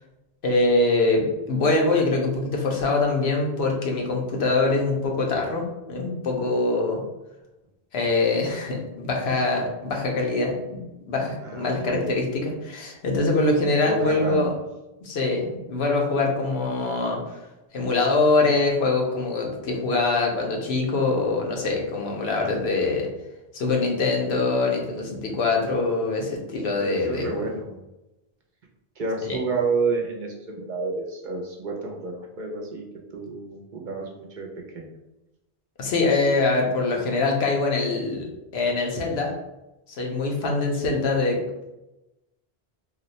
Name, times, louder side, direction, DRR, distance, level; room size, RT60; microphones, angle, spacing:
voice 1, 0.4-7.0 7.9-10.8 11.1-14.5 15.0-17.2 17.7-23.1 23.5-27.5 29.3-29.4 35.8-39.3 39.9-41.4, left 3 dB, 85° left, 1 dB, 0.9 m, -24 dB
voice 2, 11.4-12.1 13.8-14.5 26.6-27.8 29.0-32.8 33.1-34.5 34.7-34.9, right 3 dB, 55° right, 0 dB, 0.6 m, -30 dB
2.6 x 2.1 x 4.0 m, 0.98 s
omnidirectional pair, 1.0 m